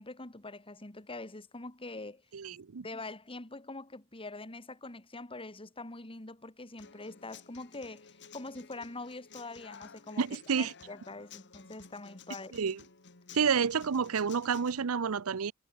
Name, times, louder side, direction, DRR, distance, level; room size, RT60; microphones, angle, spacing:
voice 1, 0.0-2.2 2.8-10.2 10.6-12.6, left 2 dB, 25° left, 2.4 m, -44 dB
voice 2, 2.3-2.8 10.2-10.7 12.5-12.8 13.3-15.5, right 6 dB, 75° right, 0.6 m, -29 dB
Human voice / Acoustic guitar, 6.8-14.8, left 6 dB, 55° left, 2.5 m, -53 dB
head